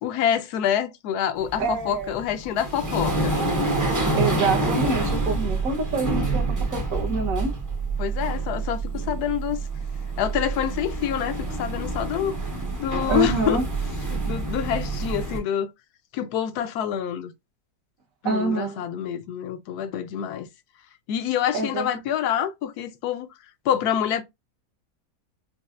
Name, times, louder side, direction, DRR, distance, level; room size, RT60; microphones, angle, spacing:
voice 1, 0.0-3.4 8.0-9.6 10.2-12.4 12.8-13.6 14.1-15.7 16.1-17.3 18.2-20.5 21.1-23.3 23.6-24.2, left 9 dB, 75° left, 1.1 m, -26 dB
sound 1, 1.4-15.4, right 2 dB, 20° right, 0.5 m, -27 dB
voice 2, 1.6-2.1 4.2-6.4 6.7-7.5 13.1-13.6 18.2-18.8 21.5-21.9, right 4 dB, 60° right, 1.4 m, -26 dB
5.3 x 2.0 x 2.4 m
omnidirectional pair, 1.7 m